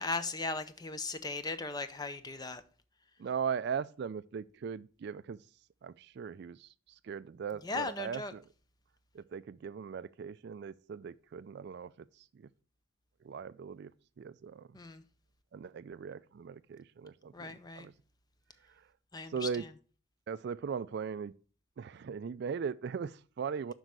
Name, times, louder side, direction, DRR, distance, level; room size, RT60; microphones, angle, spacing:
voice 1, 0.0-2.6 7.6-8.3 14.7-15.0 17.3-17.9 19.1-19.5, left 3 dB, 20° left, 0.5 m, -37 dB
voice 2, 3.2-5.4 5.8-8.4 9.1-11.9 12.2-12.5 13.2-13.9 14.2-14.7 15.5-17.9 19.3-19.7 20.3-21.3 21.8-23.7, right 6 dB, 55° right, 0.3 m, -39 dB
7.9 x 5.4 x 4.7 m
head